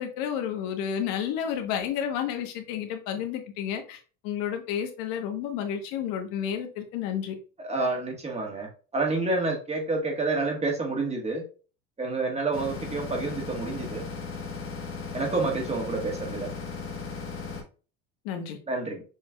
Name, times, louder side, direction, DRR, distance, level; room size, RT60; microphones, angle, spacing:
voice 1, 0.0-7.3 18.2-18.6, left 9 dB, 85° left, 5 dB, 1.1 m, -31 dB
voice 2, 7.6-11.4 12.0-14.1 15.1-16.5 18.7-19.0, right 3 dB, 20° right, 1 dB, 1.3 m, -29 dB
sound 1, 12.5-17.6, left 4 dB, 35° left, 1.2 m, -36 dB
6.3 x 3.1 x 2.3 m, 0.37 s
cardioid pair, 130°, 35 cm